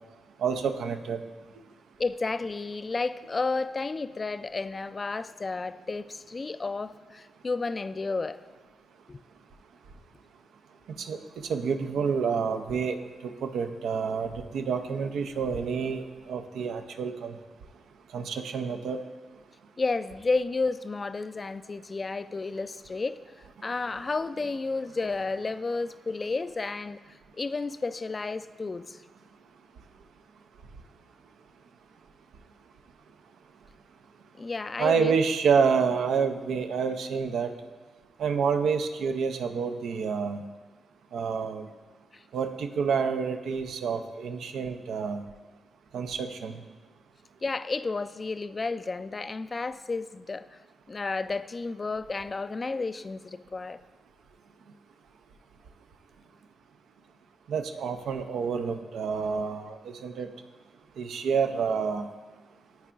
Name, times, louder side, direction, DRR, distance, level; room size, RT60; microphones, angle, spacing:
voice 1, 0.4-1.2 11.0-11.2 11.4-17.4 18.1-19.0 34.8-37.5 38.2-40.4 41.1-41.7 42.3-45.2 45.9-46.6 57.5-60.3 61.0-62.1, right 6 dB, 75° right, 7 dB, 0.5 m, -28 dB
voice 2, 2.0-8.4 9.1-9.2 19.8-23.2 23.6-27.0 27.4-29.0 34.4-35.1 47.4-50.5 50.9-53.8, left 3 dB, 40° left, 13 dB, 0.3 m, -31 dB
13.5 x 4.6 x 2.5 m, 1.3 s
supercardioid pair, 45°, 0 cm